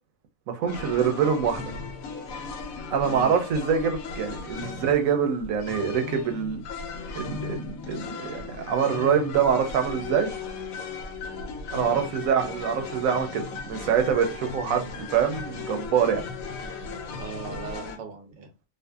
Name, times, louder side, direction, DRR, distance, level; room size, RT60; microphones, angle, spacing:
voice 1, 0.5-1.7 2.9-6.6 7.1-10.3 11.7-16.2, right 7 dB, 80° right, 1.0 m, -25 dB
sound 1, 0.7-18.0, left 5 dB, 85° left, 1.0 m, -36 dB
voice 2, 3.0-3.4 4.7-4.9 12.2-12.4 17.1-18.5, right 5 dB, 55° right, 0.6 m, -39 dB
2.6 x 2.4 x 2.2 m
omnidirectional pair, 1.4 m